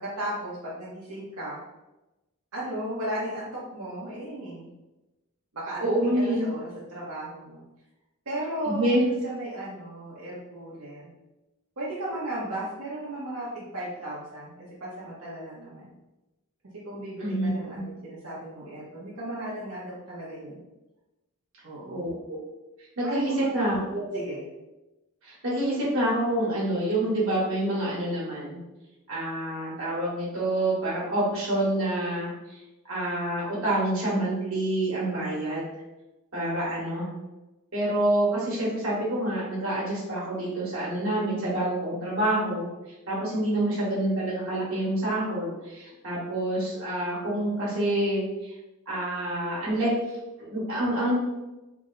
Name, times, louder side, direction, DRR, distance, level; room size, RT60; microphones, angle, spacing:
voice 1, 0.0-1.6 2.5-4.7 5.5-5.8 6.1-7.6 8.3-11.1 11.8-14.5 14.8-15.9 16.8-20.6 21.6-22.1 23.0-23.7 24.1-24.5, right 1 dB, 80° right, -7 dB, 1.0 m, -35 dB
voice 2, 5.8-6.5 8.6-9.1 17.2-17.5 17.7-17.8 21.9-22.4 23.0-24.2 25.2-28.6 29.1-32.3 32.8-35.7 36.3-37.1 37.7-42.7 43.1-48.5 48.9-49.9 50.4-51.1, right 1 dB, 65° right, -6 dB, 1.5 m, -27 dB
3.4 x 2.1 x 3.9 m, 1.0 s
head